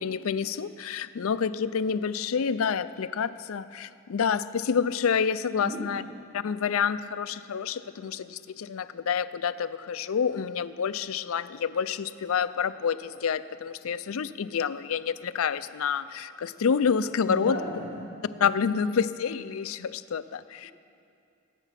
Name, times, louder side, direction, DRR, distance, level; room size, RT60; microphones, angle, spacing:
voice 1, 0.0-6.0 6.3-17.6 18.4-20.7, left 6 dB, 75° left, 14 dB, 0.4 m, -28 dB
voice 2, 5.6-6.0 17.2-18.1, equal, 25° left, -8 dB, 3.9 m, -35 dB
19.0 x 9.0 x 5.8 m, 2.5 s
head